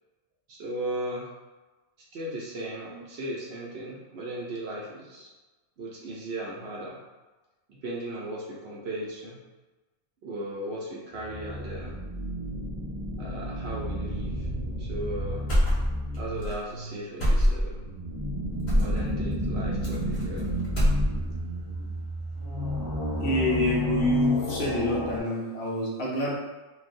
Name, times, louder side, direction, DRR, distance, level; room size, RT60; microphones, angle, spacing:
voice 1, 0.5-1.3 2.1-5.3 5.8-7.0 7.7-9.4 10.2-12.0 13.2-14.5 14.8-15.5 16.1-17.9 18.7-20.6, right 1 dB, 60° right, -4 dB, 0.8 m, -36 dB
sound 1, 11.2-25.2, equal, 25° right, 0.5 m, -32 dB
sound 2, 15.5-16.2 16.4-16.6 17.2-17.8 18.7-19.0 19.8-20.4 20.6-21.4, equal, 40° left, 1.0 m, -23 dB
voice 2, 23.2-26.3, left 1 dB, 60° left, -4 dB, 0.8 m, -26 dB
3.3 x 2.2 x 2.5 m, 1.2 s
omnidirectional pair, 1.4 m